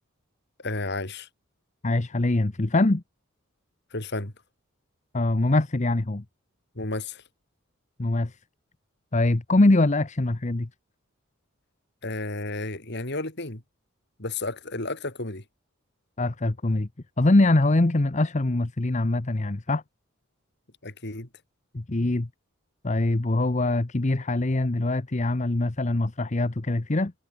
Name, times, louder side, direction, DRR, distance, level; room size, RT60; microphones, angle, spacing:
voice 1, 0.6-1.3 3.9-4.3 6.8-7.2 12.0-13.6 14.2-15.4 20.8-21.3, left 2 dB, 55° left, 3.7 m, -32 dB
voice 2, 1.8-3.0 5.1-6.2 8.0-8.3 9.1-10.7 16.2-16.9 17.2-19.8 21.7-22.3 22.8-27.1, left 2 dB, 35° left, 0.8 m, -23 dB
head